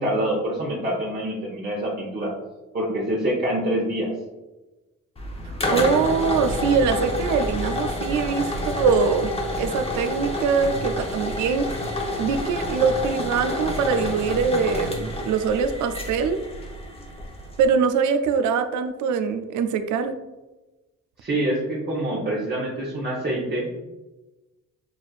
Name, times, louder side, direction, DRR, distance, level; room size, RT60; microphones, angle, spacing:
voice 1, 0.0-2.3 2.7-4.1 21.2-23.8, right 1 dB, 35° right, -5 dB, 1.0 m, -26 dB
sound 1, 5.2-17.7, left 1 dB, 20° left, 0.8 m, -29 dB
voice 2, 5.4-9.3 9.6-11.7 12.2-16.4 17.6-20.2, right 5 dB, 75° right, 8 dB, 0.5 m, -23 dB
6.3 x 2.4 x 2.4 m, 1.1 s
cardioid pair, 90°, 30 cm